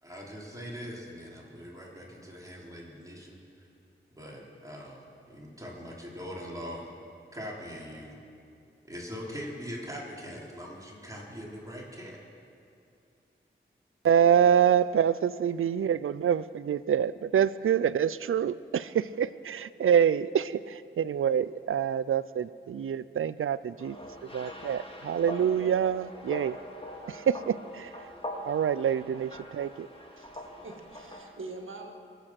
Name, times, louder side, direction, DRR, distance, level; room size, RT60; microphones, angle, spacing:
voice 1, 0.0-3.4 4.1-6.9 7.3-8.2 8.9-12.2, equal, 15° right, -4 dB, 3.6 m, -42 dB
voice 2, 14.0-24.0 24.3-26.6 27.1-28.1 28.4-29.9, right 8 dB, 90° right, 17 dB, 0.4 m, -26 dB
sound 1, 23.8-31.3, left 1 dB, 25° left, 2.1 m, -42 dB
voice 3, 30.2-31.9, right 3 dB, 75° right, 2 dB, 1.8 m, -44 dB
23.0 x 8.2 x 5.9 m, 2.6 s
wide cardioid pair, 55°, 21 cm